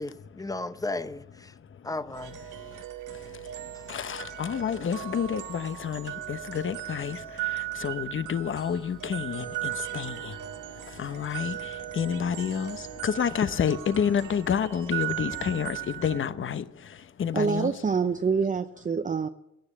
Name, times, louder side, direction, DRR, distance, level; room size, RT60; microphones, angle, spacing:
voice 1, 0.0-1.5 1.8-2.4, left 2 dB, 10° left, 0.8 m, -34 dB
sound 1, 2.1-16.2, right 14 dB, 85° right, 1.5 m, -37 dB
voice 2, 3.9-7.2 7.8-10.3 11.0-11.6 11.9-12.8 13.0-16.6 17.2-17.7, left 7 dB, 40° left, 0.9 m, -29 dB
voice 3, 17.3-19.3, right 5 dB, 25° right, 0.6 m, -26 dB
17.0 x 9.9 x 8.4 m
cardioid pair, 90°, 30 cm